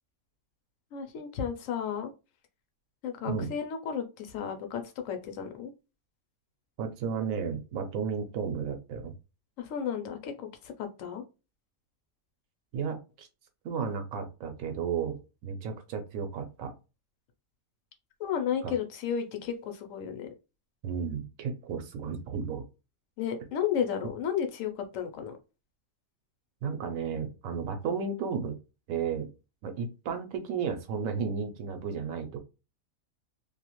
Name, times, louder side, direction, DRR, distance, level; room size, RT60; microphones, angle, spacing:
voice 1, 0.9-2.1 3.0-5.7 9.6-11.2 18.2-20.3 23.2-25.3, left 8 dB, 70° left, 6 dB, 0.9 m, -33 dB
voice 2, 6.8-9.1 12.7-13.3 13.6-16.7 18.6-18.7 20.8-22.6 26.6-28.6 28.9-29.3 29.6-32.4, right 6 dB, 70° right, 6 dB, 0.9 m, -33 dB
2.6 x 2.3 x 2.9 m, 0.29 s
omnidirectional pair, 1.5 m